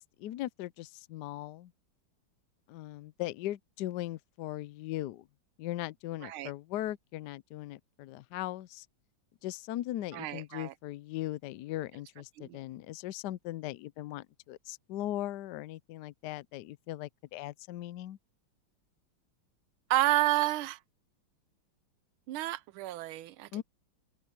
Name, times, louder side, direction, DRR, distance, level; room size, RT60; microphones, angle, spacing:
voice 1, 0.0-1.7 2.7-5.3 5.6-8.9 9.4-18.2 23.5-23.6, left 14 dB, 70° left, 1.0 m, -39 dB
voice 2, 10.1-10.7 12.4-12.6 19.9-20.8 22.3-23.5, right 16 dB, 85° right, 1.5 m, -30 dB
open air
omnidirectional pair, 2.2 m